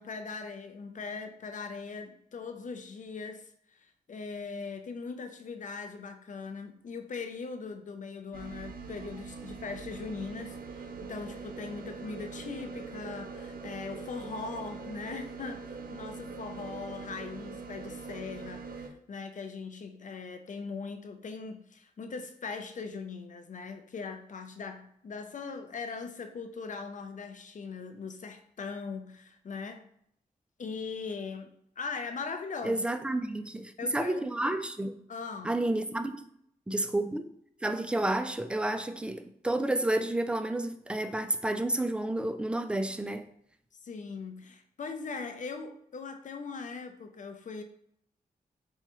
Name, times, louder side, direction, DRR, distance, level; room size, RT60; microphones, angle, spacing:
voice 1, 0.0-15.6 15.9-29.8 30.6-32.8 33.8-34.2 35.1-35.6 43.8-47.6, left 4 dB, 50° left, 0.5 m, -40 dB
sound 1, 8.3-18.9, right 4 dB, 65° right, 0.5 m, -42 dB
voice 2, 32.6-34.9 35.4-36.2 36.7-37.2 37.6-43.3, right 1 dB, 5° right, 0.4 m, -30 dB
4.2 x 2.3 x 3.0 m
cardioid pair, 55°, 16 cm